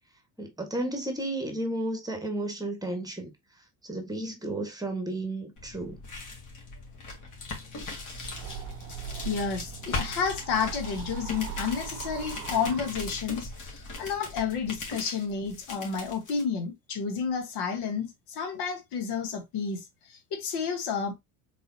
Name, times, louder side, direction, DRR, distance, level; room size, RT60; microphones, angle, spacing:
voice 1, 0.4-3.3 3.8-6.0, right 1 dB, 10° right, 1.5 m, -33 dB
sound 1, 5.6-16.4, left 3 dB, 50° left, 2.1 m, -39 dB
sound 2, 8.1-13.5, right 9 dB, 85° right, 0.6 m, -41 dB
voice 2, 9.2-21.1, left 6 dB, 75° left, 1.4 m, -31 dB
4.0 x 3.9 x 2.7 m
supercardioid pair, 85°, 40 cm